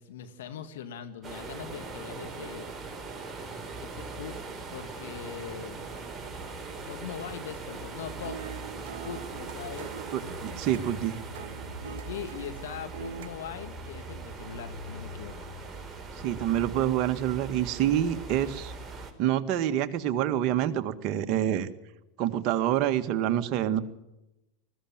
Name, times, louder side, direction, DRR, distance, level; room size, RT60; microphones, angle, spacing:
voice 1, 0.0-2.7 3.8-4.4 4.7-5.8 6.9-8.4 9.0-9.9 10.5-10.6 11.8-15.5, left 9 dB, 75° left, 9 dB, 1.8 m, -41 dB
sound 1, 1.2-19.1, right 3 dB, 15° right, 4.2 m, -40 dB
sound 2, 7.7-13.3, right 9 dB, 70° right, 1.3 m, -44 dB
voice 2, 10.1-11.2 16.2-18.7 19.2-21.7 22.2-23.8, right 11 dB, 50° right, 9 dB, 1.7 m, -27 dB
20.5 x 15.0 x 8.9 m, 0.94 s
hypercardioid pair, 95°, 0 cm